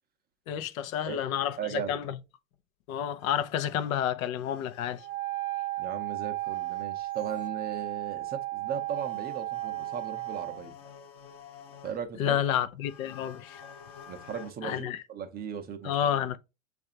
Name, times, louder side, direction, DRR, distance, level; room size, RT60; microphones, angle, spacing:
voice 1, 0.5-2.2 2.9-5.0 12.2-13.6 14.6-15.0 15.8-16.4, left 10 dB, 75° left, 0.6 m, -30 dB
voice 2, 1.6-2.1 5.8-10.8 11.8-12.4 14.1-16.0, right 8 dB, 25° right, 0.5 m, -37 dB
sound 1, 1.7-2.1 2.5-2.6 3.2-3.9 4.3-5.2 6.4-7.5 8.2-8.3 8.7-12.2 12.8-14.5, left 7 dB, 35° left, 0.8 m, -51 dB
Wind instrument woodwind instrument, 5.0-10.6, right 18 dB, 50° right, 0.8 m, -34 dB
6.5 x 2.5 x 2.7 m
hypercardioid pair, 115°, 41 cm